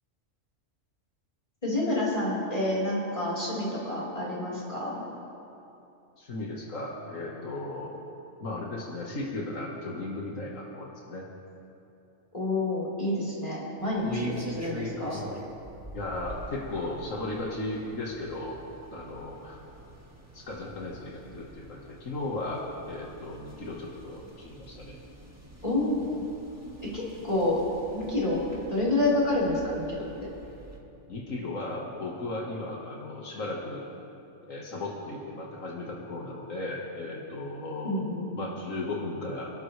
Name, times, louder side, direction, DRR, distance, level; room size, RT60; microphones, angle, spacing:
voice 1, 1.6-5.0 12.3-15.2 25.6-26.2 26.9-27.6 27.9-30.3 37.8-38.3, left 1 dB, 30° left, -7 dB, 4.3 m, -28 dB
voice 2, 6.2-8.0 8.4-11.3 15.9-18.6 18.9-19.6 20.3-25.0 31.1-33.8 34.5-38.0 38.3-39.5, left 2 dB, 80° left, -3 dB, 2.0 m, -36 dB
sound 1, 13.8-30.8, right 1 dB, 10° right, 1.8 m, -44 dB
27.5 x 12.0 x 3.3 m, 2.8 s
omnidirectional pair, 1.3 m